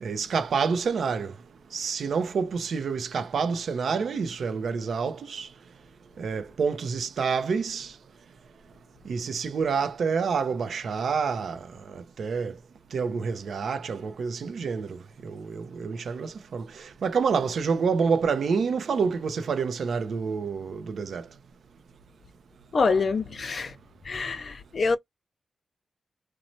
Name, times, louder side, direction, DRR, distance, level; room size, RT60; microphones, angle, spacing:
voice 1, 0.0-1.3 1.7-5.5 6.2-7.9 9.1-11.6 11.9-12.5 12.9-14.9 15.2-16.6 17.0-21.2, right 5 dB, 80° right, 0.5 m, -28 dB
voice 2, 22.7-23.7 24.1-25.0, left 4 dB, 55° left, 0.5 m, -25 dB
3.0 x 2.1 x 2.6 m
wide cardioid pair, 110°, 0 cm